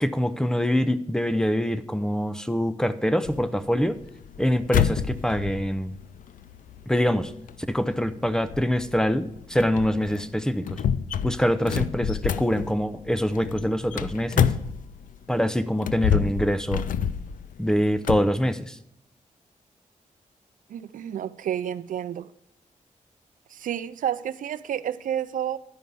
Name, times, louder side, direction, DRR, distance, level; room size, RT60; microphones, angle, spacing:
voice 1, 0.0-4.0 4.4-5.9 6.9-7.3 7.7-10.8 11.2-14.5 15.3-16.9 17.6-18.8, equal, 5° left, 0.6 m, -24 dB
sound 1, 3.3-15.2 15.7-18.3, left 8 dB, 80° left, 0.4 m, -29 dB
voice 2, 20.7-22.3 23.5-25.6, right 10 dB, 80° right, 0.4 m, -30 dB
11.0 x 5.2 x 6.8 m
cardioid pair, 95°, 14 cm